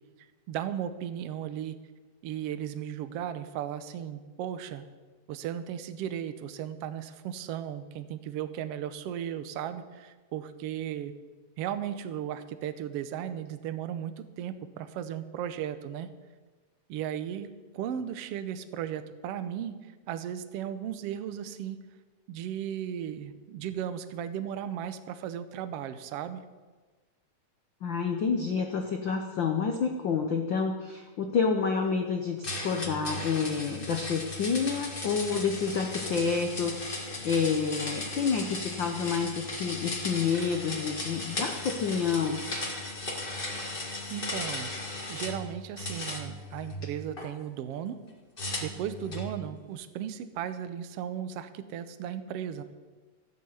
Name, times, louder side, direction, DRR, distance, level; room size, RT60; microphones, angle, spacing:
voice 1, 0.5-1.8 2.2-4.9 5.3-11.1 11.6-16.1 16.9-19.8 20.1-21.8 22.3-26.4 44.1-44.7 45.1-48.0 48.6-52.6, right 9 dB, 70° right, 11 dB, 1.5 m, -36 dB
voice 2, 27.8-36.8 37.2-42.4, left 5 dB, 75° left, 4 dB, 1.0 m, -29 dB
sound 1, 32.4-45.4 45.8-47.3 48.4-49.3, left 2 dB, 25° left, 1.2 m, -36 dB
13.5 x 9.0 x 8.1 m, 1.3 s
omnidirectional pair, 3.6 m